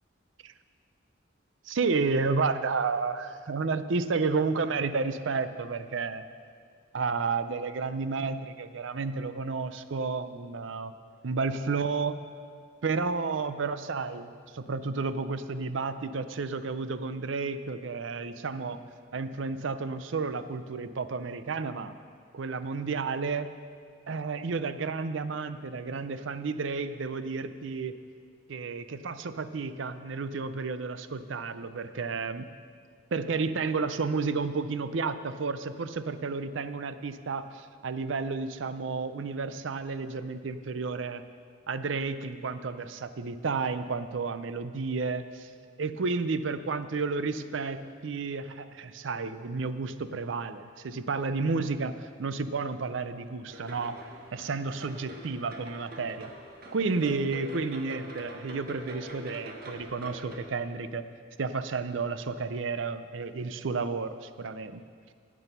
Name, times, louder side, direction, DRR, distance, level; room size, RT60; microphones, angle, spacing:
voice 1, 1.6-6.2 6.9-10.9 11.2-12.2 12.8-18.8 19.1-21.9 22.3-23.5 24.1-28.0 28.5-32.5 33.1-41.2 41.7-45.5 45.8-56.3 56.7-61.0 61.4-64.8, right 4 dB, 70° right, 12 dB, 0.5 m, -31 dB
sound 1, 53.5-60.4, equal, 50° right, 1.4 m, -45 dB
18.0 x 6.2 x 5.5 m, 2.1 s
head